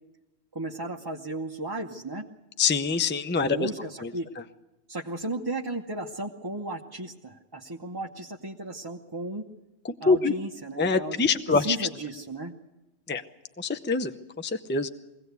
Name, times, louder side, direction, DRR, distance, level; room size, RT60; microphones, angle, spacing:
voice 1, 0.5-2.3 3.3-4.3 4.9-9.5 10.0-12.5, right 2 dB, 20° right, 0 dB, 0.9 m, -35 dB
voice 2, 2.6-3.7 4.0-4.1 10.1-10.3 10.8-11.9 13.1-13.2 13.6-14.1 14.4-14.9, left 4 dB, 10° left, 9 dB, 0.6 m, -24 dB
23.0 x 17.5 x 8.2 m, 1.0 s
omnidirectional pair, 1.1 m